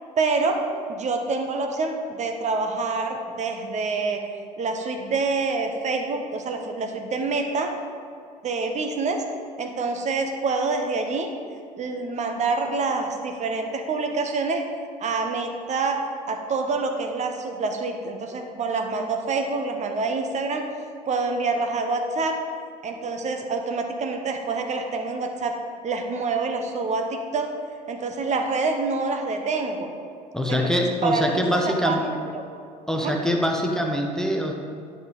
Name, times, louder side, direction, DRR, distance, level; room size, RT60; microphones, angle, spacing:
voice 1, 0.2-0.6 0.9-4.2 4.6-7.7 8.4-9.2 9.6-11.3 11.8-14.6 15.0-16.0 16.3-20.7 21.1-22.4 22.8-25.6 25.8-27.5 27.9-29.9 30.5-30.7 31.0-32.5 33.0-33.1, right 3 dB, 35° right, 4 dB, 1.0 m, -26 dB
voice 2, 30.3-32.0 32.9-34.5, equal, 5° left, 2 dB, 0.8 m, -24 dB
10.5 x 5.3 x 4.0 m, 2.4 s
figure-of-eight pair, 70°, 21 cm